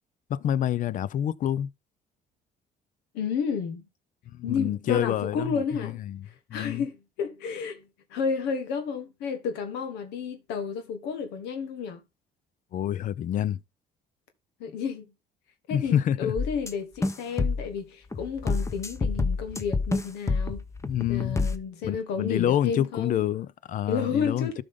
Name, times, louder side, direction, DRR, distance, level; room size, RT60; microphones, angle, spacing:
voice 1, 0.3-1.7 4.3-6.2 6.5-6.8 12.7-13.6 15.7-16.3 20.8-21.4 21.8-24.6, left 10 dB, 50° left, 0.5 m, -27 dB
voice 2, 3.1-3.8 4.4-6.0 6.5-7.8 8.1-12.0 14.6-15.1 15.7-20.6 21.1-23.2 23.9-24.6, left 6 dB, 90° left, 1.5 m, -31 dB
sound 1, 16.4-16.7 17.0-17.7 18.1-21.6, left 3 dB, 15° left, 0.8 m, -28 dB
12.5 x 5.2 x 3.7 m
cardioid pair, 110°, 17 cm